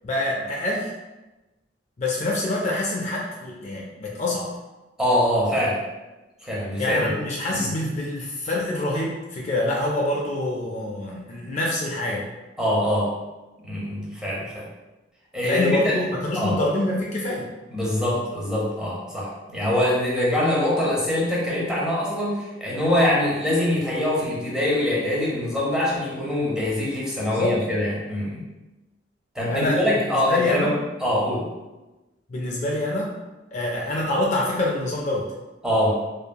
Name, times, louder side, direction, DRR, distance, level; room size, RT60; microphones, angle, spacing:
voice 1, 0.0-0.9 2.0-4.5 6.8-12.3 15.4-17.5 27.3-27.6 29.5-30.7 32.3-33.1 33.5-35.3, left 1 dB, 40° left, -2 dB, 0.3 m, -26 dB
voice 2, 5.0-5.8 6.4-7.1 7.5-7.7 12.6-13.1 13.6-14.7 15.3-15.9 16.4-16.6 17.7-28.4 29.3-30.7 31.0-31.5 35.6-36.0, left 1 dB, 5° right, -6 dB, 0.7 m, -23 dB
2.8 x 2.6 x 2.2 m, 1.1 s
head